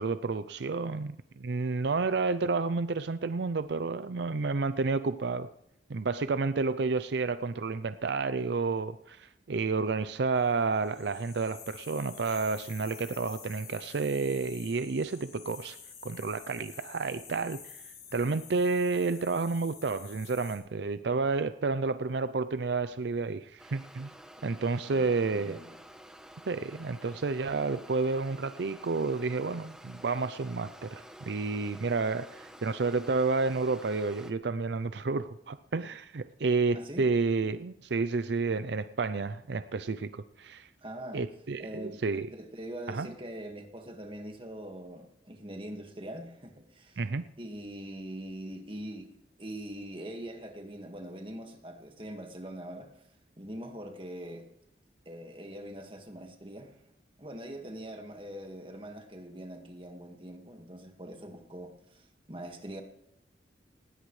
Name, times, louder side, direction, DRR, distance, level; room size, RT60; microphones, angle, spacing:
voice 1, 0.0-5.5 5.9-15.8 16.0-17.8 18.1-24.1 24.4-25.6 26.5-40.7 41.1-42.3 42.9-43.1 47.0-47.2, right 4 dB, 70° right, 0.5 m, -30 dB
sound 1, 10.7-20.6, left 7 dB, 60° left, 7.0 m, -49 dB
sound 2, 23.6-34.3, right 1 dB, 5° right, 0.9 m, -50 dB
voice 2, 24.9-25.8 36.7-37.1 40.8-41.3 41.6-42.0 42.3-47.0 47.4-49.1 49.4-52.9 53.4-54.5 55.1-56.8 57.2-62.8, right 1 dB, 30° right, 1.8 m, -43 dB
19.0 x 16.5 x 3.3 m
head